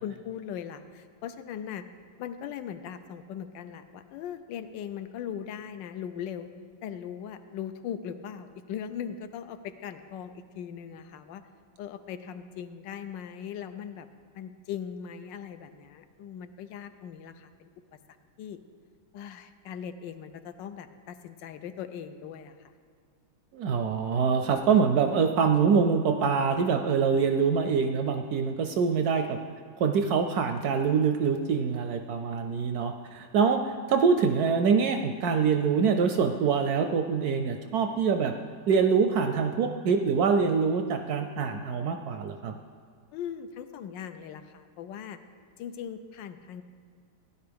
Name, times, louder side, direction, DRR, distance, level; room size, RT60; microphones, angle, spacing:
voice 1, 0.0-1.8 2.2-6.5 6.8-11.4 11.8-14.1 14.3-17.7 18.4-18.6 19.1-22.7 43.1-45.2 45.6-46.6, left 8 dB, 80° left, 10 dB, 1.3 m, -39 dB
voice 2, 23.5-29.4 29.8-38.3 38.7-42.6, right 6 dB, 70° right, 6 dB, 0.9 m, -25 dB
16.0 x 10.0 x 3.5 m, 2.2 s
omnidirectional pair, 2.0 m